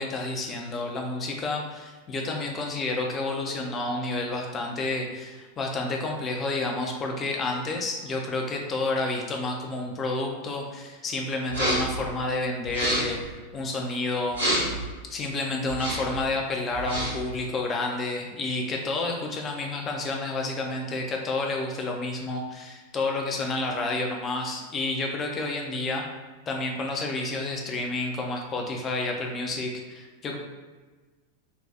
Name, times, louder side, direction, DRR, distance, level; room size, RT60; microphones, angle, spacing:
voice 1, 0.0-14.4 15.1-26.1 26.5-30.4, left 2 dB, 25° left, 1 dB, 0.6 m, -30 dB
sound 1, 11.5-12.0 12.6-13.2 14.3-14.8 15.7-16.2 16.7-17.3, right 1 dB, 90° right, 1.3 m, -28 dB
4.1 x 2.3 x 2.3 m, 1.3 s
figure-of-eight pair, 90°, 0 cm